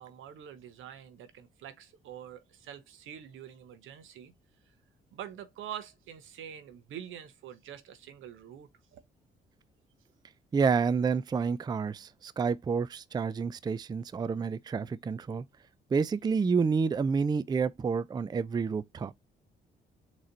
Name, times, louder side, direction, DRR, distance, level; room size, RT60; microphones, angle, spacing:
voice 1, 0.0-4.3 5.1-9.0, right 10 dB, 85° right, 0.9 m, -45 dB
voice 2, 10.5-15.4 15.9-19.1, right 5 dB, 20° right, 0.4 m, -29 dB
4.1 x 3.1 x 3.9 m
cardioid pair, 90°, 20 cm